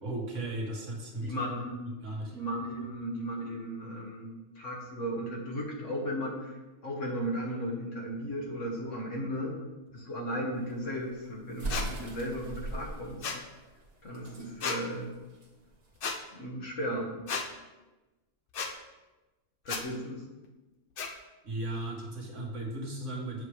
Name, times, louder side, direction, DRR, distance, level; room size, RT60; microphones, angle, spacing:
voice 1, 0.0-1.4 1.9-2.3 21.4-23.4, right 2 dB, 70° right, -1 dB, 1.7 m, -36 dB
voice 2, 1.2-1.8 2.3-6.6 6.8-9.6 9.9-13.3 14.0-15.1 16.3-17.1 19.7-20.2, equal, 65° left, -1 dB, 1.8 m, -35 dB
sound 1, 10.6-16.1, right 2 dB, 30° right, 1.3 m, -40 dB
sound 2, 11.7-11.9 13.2-13.4 14.6-14.8 16.0-16.2 17.3-17.4 18.5-18.7 19.6-19.8 21.0-21.1, left 5 dB, 50° left, 0.8 m, -33 dB
7.3 x 7.2 x 3.3 m, 1.1 s
omnidirectional pair, 1.4 m